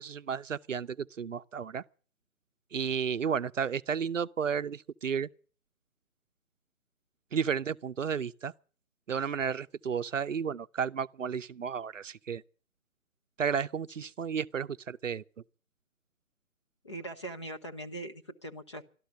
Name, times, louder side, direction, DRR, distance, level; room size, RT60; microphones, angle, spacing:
voice 1, 0.0-1.8 2.7-5.3 7.3-8.5 9.1-12.4 13.4-15.2, right 7 dB, 60° right, 0.6 m, -32 dB
voice 2, 16.8-18.9, right 1 dB, 20° left, 0.7 m, -41 dB
12.5 x 12.5 x 8.1 m
figure-of-eight pair, 150°, 42 cm